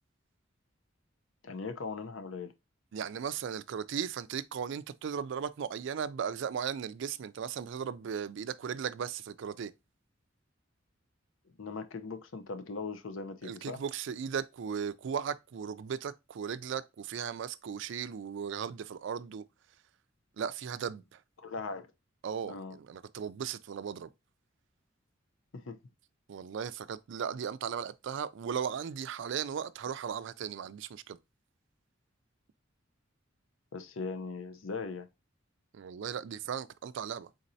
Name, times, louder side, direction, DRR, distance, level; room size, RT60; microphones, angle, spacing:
voice 1, 1.4-2.5 11.6-13.8 21.4-21.9 22.5-22.8 25.5-25.8 33.7-35.1, left 4 dB, 85° left, 0.6 m, -39 dB
voice 2, 2.9-9.7 13.4-19.4 20.4-21.2 22.2-24.1 26.3-31.2 35.7-37.3, right 7 dB, 65° right, 0.4 m, -37 dB
4.2 x 3.8 x 2.6 m
head